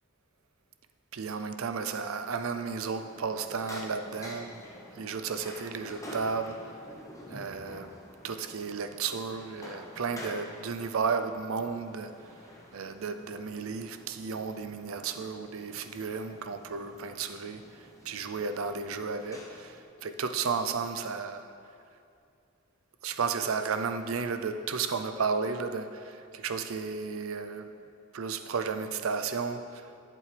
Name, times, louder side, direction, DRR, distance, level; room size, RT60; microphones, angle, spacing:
voice 1, 1.1-4.6 5.0-6.8 7.3-8.0 8.2-12.2 12.7-21.4 23.0-27.7 28.1-29.9, right 5 dB, 75° right, 9 dB, 0.5 m, -33 dB
sound 1, 2.9-19.8, left 1 dB, 15° left, 1.0 m, -49 dB
12.0 x 7.6 x 3.4 m, 2.5 s
head